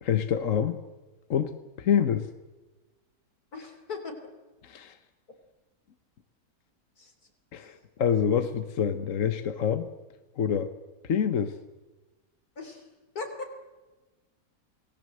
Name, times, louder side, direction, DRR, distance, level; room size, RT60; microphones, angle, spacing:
voice 1, 0.0-0.8 1.3-1.5 1.8-2.3 4.6-5.0 7.5-9.9 10.4-10.7 11.0-11.5, left 8 dB, 60° left, 9 dB, 1.4 m, -26 dB
voice 2, 3.5-4.2 7.0-7.3 7.6-7.8 12.6-12.9 13.1-13.5, left 4 dB, 80° left, 5 dB, 4.0 m, -39 dB
28.0 x 19.0 x 7.8 m, 1.2 s
omnidirectional pair, 1.6 m